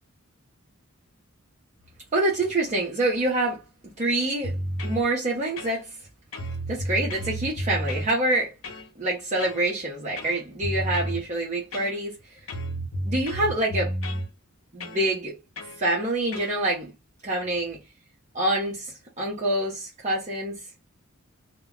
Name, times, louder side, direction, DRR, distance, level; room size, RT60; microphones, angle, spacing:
voice 1, 2.1-3.6 4.0-4.5 4.8-6.0 6.7-8.5 9.0-12.2 13.0-13.9 14.7-15.3 15.8-16.9 17.2-17.8 18.3-20.6, right 1 dB, 35° right, 0.7 m, -26 dB
sound 1, 4.4-5.0 5.6-6.1 6.3-8.1 8.6-8.9 9.4-9.7 10.2-11.2 11.7-12.2 12.5-14.3 14.8-15.0 15.6-15.8 16.3-16.6, equal, 70° left, 0.7 m, -31 dB
2.2 x 2.1 x 3.5 m
head